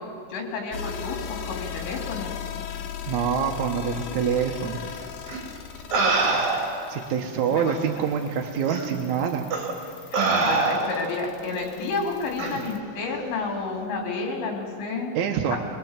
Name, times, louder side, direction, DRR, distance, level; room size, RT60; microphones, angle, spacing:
voice 1, 0.3-2.4 7.5-7.8 10.1-15.1 15.5-15.6, left 3 dB, 90° left, 1 dB, 5.6 m, -30 dB
sound 1, 0.7-12.8, left 8 dB, 70° left, 3.0 m, -38 dB
voice 2, 3.1-4.8 6.9-9.4 15.2-15.6, right 7 dB, 70° right, 2 dB, 1.8 m, -25 dB
sound 2, 5.3-5.4 5.9-6.9 7.7-7.8 8.7-8.9 9.5-9.7 10.1-11.1 12.4-12.6, right 3 dB, 45° right, 4.1 m, -24 dB
24.0 x 22.5 x 7.4 m, 2.3 s
omnidirectional pair, 5.0 m